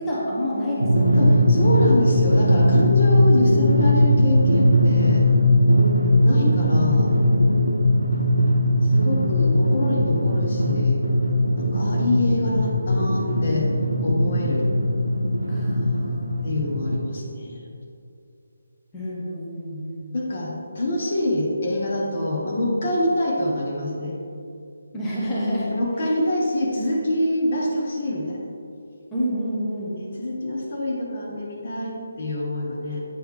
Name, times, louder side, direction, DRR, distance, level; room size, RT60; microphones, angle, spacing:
voice 1, 0.0-1.4 5.9-6.5 8.3-9.3 15.5-16.5 18.9-20.1 24.9-26.1 29.1-30.0, equal, 15° left, -7 dB, 1.1 m, -29 dB
Drum, 0.8-17.0, left 1 dB, 85° right, 0.6 m, -19 dB
voice 2, 1.2-5.3 5.6-5.7 6.2-7.1 8.8-11.0 11.6-13.7 14.0-14.7 16.4-17.6 20.1-24.1 25.6-28.4 30.0-33.1, left 1 dB, 50° left, -2 dB, 1.2 m, -25 dB
8.5 x 4.9 x 3.2 m, 2.5 s
figure-of-eight pair, 150°, 0 cm